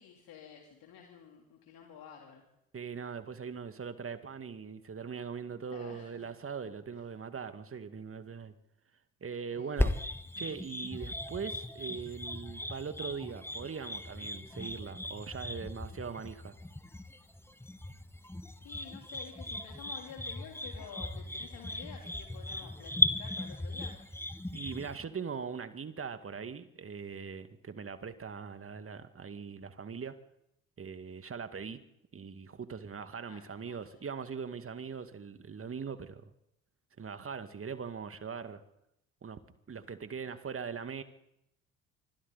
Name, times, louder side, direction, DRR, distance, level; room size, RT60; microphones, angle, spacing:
voice 1, 0.0-2.4 5.7-6.3 9.5-9.7 18.6-24.0 33.3-33.9, left 7 dB, 55° left, 3.6 m, -51 dB
voice 2, 2.7-8.5 9.2-9.9 10.4-16.5 24.5-30.2 30.8-31.8 32.1-36.2 37.0-38.6 39.2-39.4 39.7-41.0, right 6 dB, 30° right, 2.1 m, -41 dB
sound 1, 9.8-25.0, left 1 dB, 5° left, 1.5 m, -37 dB
26.5 x 25.0 x 4.2 m
figure-of-eight pair, 55°, 42 cm